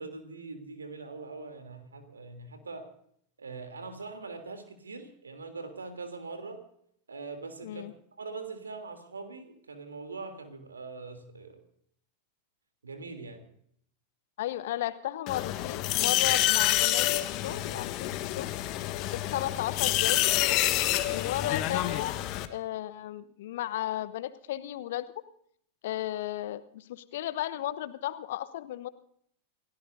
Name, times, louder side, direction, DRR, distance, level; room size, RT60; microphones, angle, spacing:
voice 1, 0.0-2.9 3.4-6.6 7.1-7.9 8.2-11.6 12.8-13.4, right 4 dB, 75° right, 7 dB, 3.2 m, -42 dB
voice 2, 14.4-18.5 19.0-20.6 21.1-22.2 22.5-25.1 25.8-28.9, left 13 dB, 55° left, 15 dB, 1.0 m, -35 dB
sound 1, 15.3-22.5, left 15 dB, 40° left, 1.3 m, -28 dB
29.5 x 17.0 x 2.7 m, 0.68 s
figure-of-eight pair, 90°, 0 cm